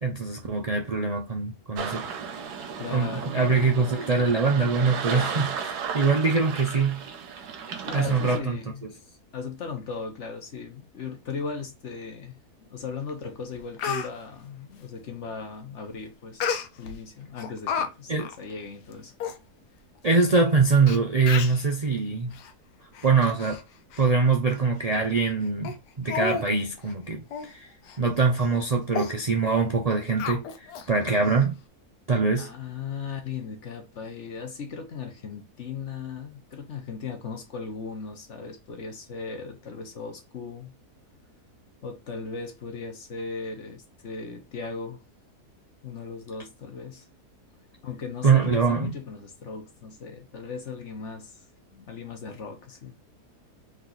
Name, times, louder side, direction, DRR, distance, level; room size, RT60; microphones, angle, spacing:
voice 1, 0.0-2.0 2.9-7.0 7.9-8.6 18.1-18.3 20.0-22.3 23.0-23.6 24.0-27.7 28.0-31.5 32.1-32.5 48.2-48.9, right 4 dB, 60° right, 0.4 m, -23 dB
sound 1, 1.8-8.4, right 6 dB, 90° right, 1.4 m, -34 dB
voice 2, 2.8-3.5 7.8-8.9 9.3-16.4 16.8-19.1 32.4-40.7 41.8-45.0 45.8-47.1 47.8-51.3 51.7-53.0, left 5 dB, 50° left, 1.4 m, -37 dB
Speech, 13.1-13.2 13.5-14.1 16.4-17.0 17.4-17.9 18.2-18.4 18.9-19.0 19.2-19.4 20.1-20.2 20.9-21.0 21.3-21.6 22.3-22.5 22.9-23.6 23.9-24.1 24.5-24.6 25.2-25.3 25.6-25.8 26.1-26.5 26.8-26.9 27.3-27.5 27.9-28.0 28.4-28.6 28.9-29.1 30.2-30.9 31.2-31.3, left 6 dB, 90° left, 1.3 m, -31 dB
4.0 x 3.1 x 3.9 m
omnidirectional pair, 1.7 m